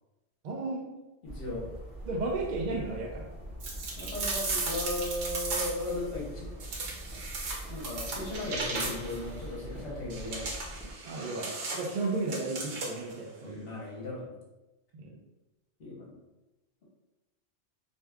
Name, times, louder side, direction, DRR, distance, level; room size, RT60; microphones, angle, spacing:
voice 1, 0.4-0.9 2.1-3.3 11.0-13.7 14.9-15.1, right 3 dB, 65° right, 0 dB, 0.4 m, -34 dB
voice 2, 1.2-1.6 4.0-6.5 7.7-10.5 13.4-14.4 15.8-16.1, left 2 dB, 55° left, -5 dB, 1.0 m, -36 dB
sound 1, 1.2-10.9, right 1 dB, 5° left, 0.6 m, -43 dB
sound 2, 3.6-6.0 6.6-9.2 10.1-13.1, right 3 dB, 85° right, 1.1 m, -36 dB
2.6 x 2.3 x 3.3 m, 1.0 s
omnidirectional pair, 1.3 m